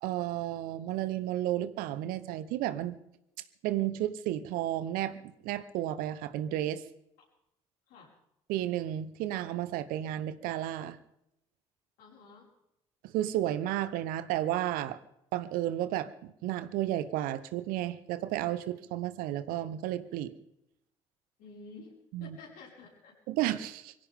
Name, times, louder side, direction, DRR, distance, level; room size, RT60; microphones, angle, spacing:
voice 1, 0.0-3.0 3.6-6.8 8.5-11.0 13.0-15.0 15.3-16.1 16.4-20.3 22.1-22.4 23.3-23.9, right 13 dB, 65° right, 14 dB, 1.0 m, -32 dB
voice 2, 12.0-12.5 21.4-21.9 22.2-23.1, left 4 dB, 65° left, -2 dB, 5.7 m, -50 dB
24.0 x 16.0 x 3.7 m, 0.81 s
figure-of-eight pair, 50°, 16 cm